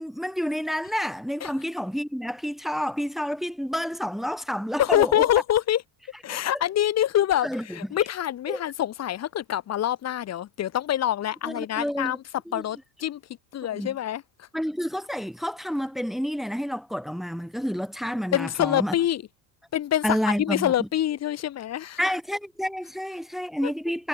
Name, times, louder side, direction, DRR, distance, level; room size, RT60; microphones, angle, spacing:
voice 1, 0.0-5.2 7.4-7.6 8.5-8.6 11.4-12.2 12.5-12.6 13.7-14.0 14.5-18.9 20.0-20.7 22.0-24.1, equal, ahead, 1.9 m, -29 dB
voice 2, 4.8-5.8 6.2-12.2 12.5-13.2 13.5-14.5 18.3-19.2 19.7-22.0 23.6-23.7, left 11 dB, 35° left, 3.9 m, -25 dB
cardioid pair, 165°, 45 cm